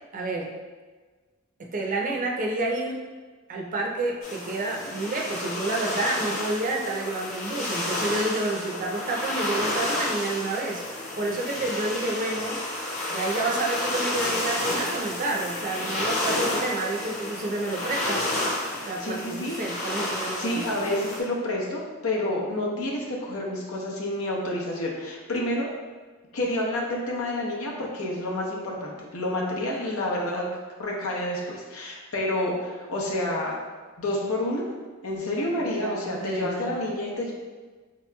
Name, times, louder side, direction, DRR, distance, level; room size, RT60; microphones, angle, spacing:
voice 1, 0.1-0.5 1.7-3.0 3.5-10.8 11.2-12.6 13.1-18.2 18.9-20.6 35.5-36.8, right 2 dB, 40° right, -1 dB, 0.5 m, -29 dB
sound 1, 4.2-21.2, left 1 dB, 35° left, 0.9 m, -31 dB
voice 2, 19.0-19.6 20.4-25.7 26.3-30.4 30.8-33.5 34.0-34.6 35.0-37.3, left 1 dB, 85° left, -2 dB, 0.8 m, -29 dB
4.6 x 2.9 x 2.2 m, 1.4 s
head